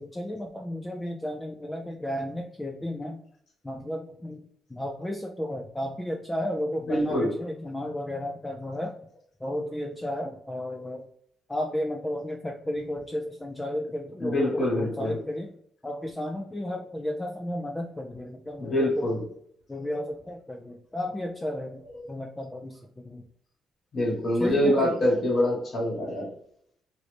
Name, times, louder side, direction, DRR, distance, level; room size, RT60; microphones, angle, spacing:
voice 1, 0.0-3.2 3.6-4.4 4.7-8.9 9.4-11.1 11.5-15.5 15.8-19.2 19.7-21.8 22.1-23.2 24.4-25.0, left 1 dB, 10° left, 1 dB, 0.3 m, -33 dB
voice 2, 6.9-7.3 14.2-15.2 18.6-19.2 23.9-26.3, left 1 dB, 45° left, -2 dB, 1.3 m, -25 dB
3.0 x 2.6 x 3.2 m, 0.65 s
cardioid pair, 105°, 0 cm